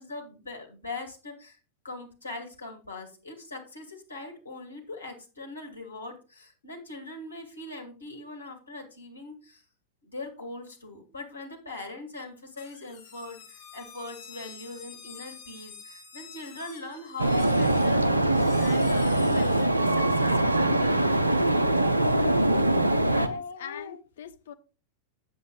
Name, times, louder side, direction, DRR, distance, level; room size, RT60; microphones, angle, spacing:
voice 1, 0.0-1.6 1.8-9.6 10.0-18.3 18.6-21.8, left 2 dB, 75° left, 2.1 m, -41 dB
sound 1, 12.6-19.7, left 7 dB, 40° left, 2.4 m, -48 dB
sound 2, 17.2-23.3, right 1 dB, 85° right, 0.6 m, -23 dB
voice 2, 23.0-24.5, left 5 dB, 60° left, 0.7 m, -38 dB
7.9 x 7.4 x 3.8 m
figure-of-eight pair, 90°, 0 cm